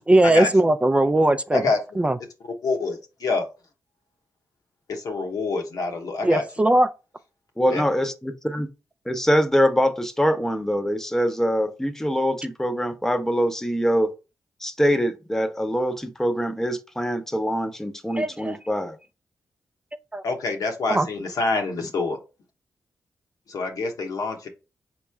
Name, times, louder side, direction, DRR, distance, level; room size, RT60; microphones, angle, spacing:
voice 1, 0.1-1.6 2.0-2.2 6.2-6.9 18.1-18.6 20.1-20.2 20.9-21.1, right 1 dB, 20° right, 0.4 m, -19 dB
voice 2, 2.4-3.5 4.9-6.4 7.7-7.8 20.2-22.2 23.5-24.5, left 3 dB, 75° left, 1.0 m, -26 dB
voice 3, 7.6-8.7 9.1-14.1 14.6-19.0, equal, 5° left, 0.7 m, -24 dB
4.2 x 3.0 x 3.5 m
cardioid pair, 55°, 6 cm